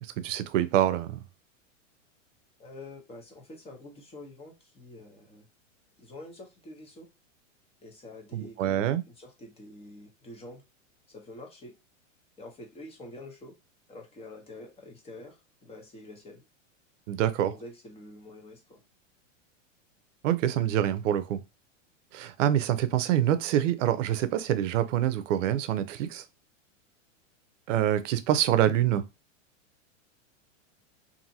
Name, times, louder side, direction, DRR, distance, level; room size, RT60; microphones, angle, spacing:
voice 1, 0.0-1.2 8.3-9.0 17.1-17.5 20.2-21.4 22.1-26.2 27.7-29.0, right 11 dB, 75° right, 0.6 m, -26 dB
voice 2, 2.6-5.5 6.0-7.1 7.8-10.6 11.1-11.7 12.4-13.6 13.9-16.4 17.5-18.8, left 1 dB, 15° left, 0.7 m, -47 dB
2.7 x 2.7 x 2.6 m
hypercardioid pair, 125°, 38 cm